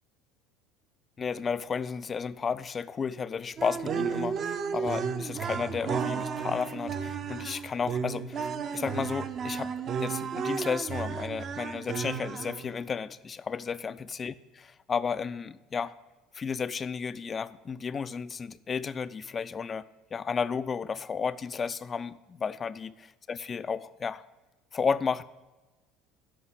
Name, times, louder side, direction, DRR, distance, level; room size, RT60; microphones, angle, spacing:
voice 1, 1.2-8.5 8.7-9.7 10.0-15.9 16.3-19.8 20.1-22.9 23.3-24.2 24.7-25.2, left 6 dB, 30° left, 15 dB, 0.4 m, -33 dB
sound 1, 3.6-12.8, right 6 dB, 40° right, 0.7 m, -33 dB
13.0 x 5.5 x 7.9 m, 1.2 s
figure-of-eight pair, 65°, 0 cm